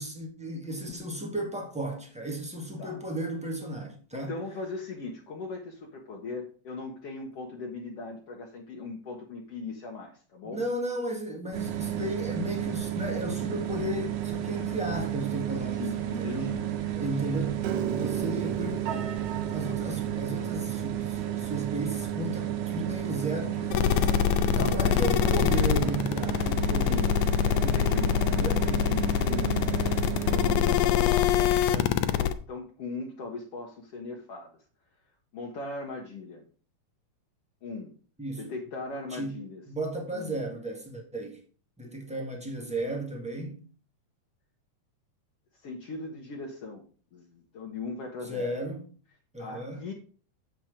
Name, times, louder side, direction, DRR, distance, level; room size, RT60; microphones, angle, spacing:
voice 1, 0.0-4.4 10.4-16.6 16.9-19.1 19.5-27.0 27.4-27.8 28.1-28.6 38.2-38.5 39.1-41.4 41.8-43.6 48.2-48.8 49.3-49.8, right 1 dB, 5° right, 0.7 m, -34 dB
voice 2, 4.1-10.7 15.7-16.6 24.6-24.9 25.2-25.5 26.8-27.1 27.7-28.1 28.4-34.6 35.3-36.4 37.6-37.9 38.4-39.6 40.1-40.4 42.1-42.2 45.6-46.8 47.1-48.5 49.4-49.9, left 3 dB, 60° left, 1.9 m, -39 dB
sound 1, 11.5-30.8, right 11 dB, 85° right, 2.4 m, -32 dB
Piano, 17.6-23.8, right 7 dB, 65° right, 1.7 m, -38 dB
sound 2, 23.7-32.3, left 10 dB, 85° left, 2.0 m, -24 dB
7.8 x 6.0 x 5.0 m
omnidirectional pair, 3.4 m